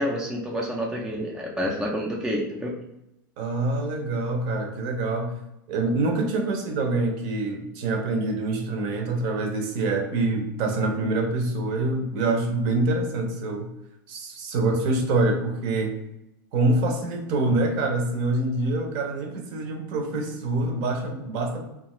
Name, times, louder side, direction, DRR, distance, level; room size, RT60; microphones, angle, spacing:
voice 1, 0.0-2.7, equal, 5° right, -1 dB, 0.3 m, -28 dB
voice 2, 3.4-5.4 5.7-13.7 14.1-15.9 16.5-21.6, right 2 dB, 50° right, 3 dB, 0.6 m, -25 dB
2.5 x 2.3 x 3.0 m, 0.88 s
supercardioid pair, 140°, 11 cm